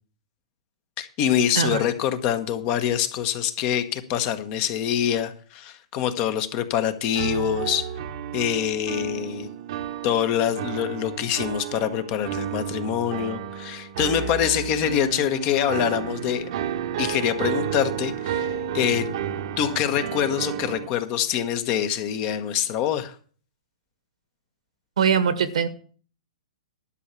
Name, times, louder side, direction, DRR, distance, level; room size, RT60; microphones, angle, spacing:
voice 1, 1.0-7.9 8.3-9.5 10.0-16.5 17.0-19.1 19.6-23.1, left 10 dB, 35° left, 10 dB, 1.2 m, -25 dB
sound 1, 7.1-20.9, right 9 dB, 55° right, 1.1 m, -31 dB
voice 2, 25.0-25.7, right 7 dB, 75° right, 13 dB, 1.5 m, -21 dB
11.5 x 5.6 x 8.3 m, 0.43 s
hypercardioid pair, 130°, 4 cm